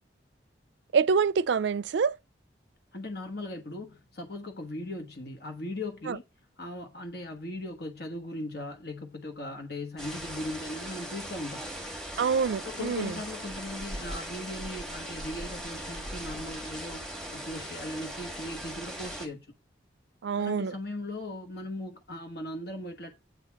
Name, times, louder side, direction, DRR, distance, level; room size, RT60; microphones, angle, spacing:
voice 1, 0.9-2.2 6.1-6.2 12.2-13.1 20.2-20.7, right 5 dB, 75° right, 0.4 m, -26 dB
voice 2, 2.9-6.2 6.6-11.7 12.6-19.5 20.4-23.1, left 1 dB, 55° left, 1.3 m, -38 dB
sound 1, 10.0-19.3, equal, 5° left, 1.7 m, -39 dB
8.7 x 4.0 x 5.9 m
head